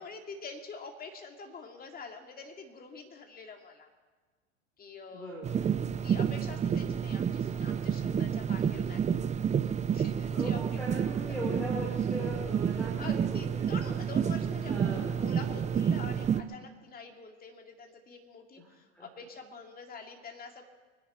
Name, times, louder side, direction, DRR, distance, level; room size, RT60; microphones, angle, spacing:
voice 1, 0.0-3.9 4.8-5.4 6.0-9.2 9.6-10.6 10.9-11.0 12.7-20.7, left 4 dB, 25° left, 3 dB, 2.5 m, -46 dB
voice 2, 5.1-5.7 10.3-14.0 14.5-15.3 18.6-19.3, equal, 5° left, -3 dB, 3.6 m, -40 dB
sound 1, 5.4-16.4, right 8 dB, 20° right, 0.7 m, -30 dB
24.5 x 10.5 x 4.4 m, 1.4 s
hypercardioid pair, 95°, 36 cm